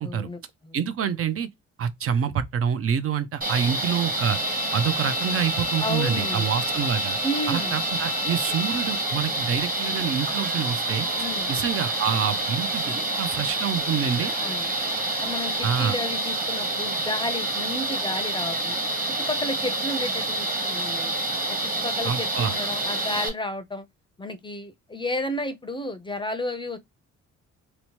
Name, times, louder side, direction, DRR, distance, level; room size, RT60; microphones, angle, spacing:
voice 1, 0.0-0.9 5.8-6.5 7.2-7.8 11.2-11.5 14.4-14.7 15.2-18.8 19.2-21.1 21.5-23.9 24.2-26.8, left 1 dB, 15° left, 0.5 m, -32 dB
voice 2, 0.7-1.5 1.8-4.4 4.7-7.2 7.5-11.1 11.5-14.3 15.6-16.0 22.0-22.5, right 7 dB, 50° right, 0.5 m, -27 dB
sound 1, 3.4-23.3, right 2 dB, 30° right, 1.0 m, -28 dB
Bowed string instrument, 4.1-9.1, left 15 dB, 85° left, 0.7 m, -37 dB
Crowd, 9.4-15.9, right 4 dB, 75° right, 1.4 m, -44 dB
2.9 x 2.0 x 2.8 m
cardioid pair, 90°, 30 cm